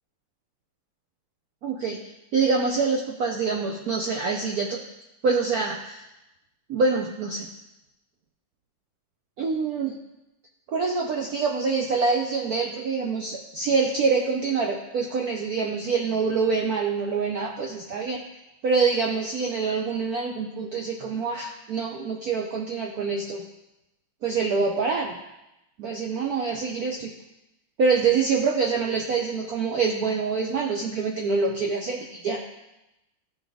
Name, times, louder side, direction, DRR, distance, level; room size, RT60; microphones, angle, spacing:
voice 1, 1.6-4.8 5.2-6.0 6.7-7.5 9.4-10.0 10.7-18.2 18.6-23.4 24.2-25.2 25.8-27.1 27.8-32.4, right 4 dB, 65° right, 1 dB, 0.9 m, -25 dB
13.5 x 5.7 x 3.5 m, 0.94 s
omnidirectional pair, 2.4 m